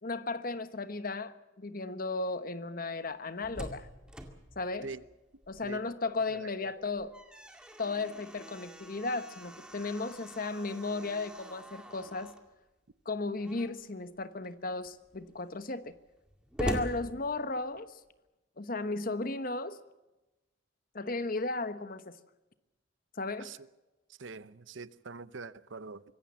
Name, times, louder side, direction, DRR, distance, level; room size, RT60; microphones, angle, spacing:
voice 1, 0.0-3.9 4.6-4.9 5.5-7.1 7.8-12.3 13.0-16.0 16.6-18.0 18.6-19.8 20.9-22.2 23.2-23.5, left 3 dB, 45° left, 1.1 m, -35 dB
Slam, 3.1-5.9 6.3-6.4 6.8-12.5 13.4-13.9 14.4-14.5 14.8-17.9, equal, 5° right, 2.1 m, -43 dB
voice 2, 5.6-6.7 23.4-23.7 24.2-26.0, right 4 dB, 75° right, 0.8 m, -45 dB
25.0 x 17.0 x 7.3 m
head